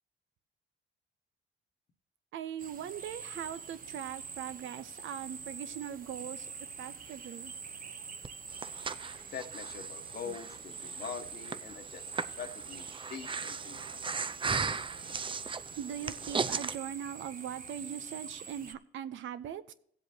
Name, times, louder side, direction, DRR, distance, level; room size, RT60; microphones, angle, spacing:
voice 1, 2.3-6.5 6.8-7.5 15.8-19.7, right 10 dB, 75° right, 13 dB, 0.7 m, -40 dB
sound 1, 2.6-18.7, right 5 dB, 45° right, 0.9 m, -45 dB
Breathing, 8.2-16.8, right 5 dB, 25° right, 0.5 m, -37 dB
voice 2, 9.3-14.0, left 6 dB, 55° left, 8 dB, 1.2 m, -44 dB
16.5 x 7.9 x 2.9 m, 0.65 s
cardioid pair, 90°, 20 cm